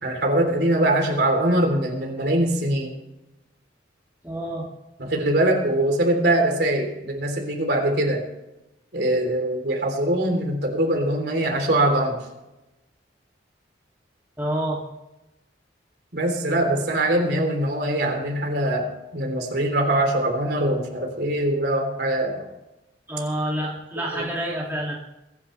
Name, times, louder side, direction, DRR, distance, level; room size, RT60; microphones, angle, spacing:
voice 1, 0.0-2.9 5.0-8.2 8.9-12.2 16.1-22.5 24.1-24.2, right 1 dB, 60° right, 2 dB, 3.4 m, -22 dB
voice 2, 4.2-4.7 14.4-14.8 23.1-25.0, right 1 dB, 10° right, -5 dB, 2.5 m, -28 dB
23.0 x 10.5 x 3.3 m, 0.93 s
head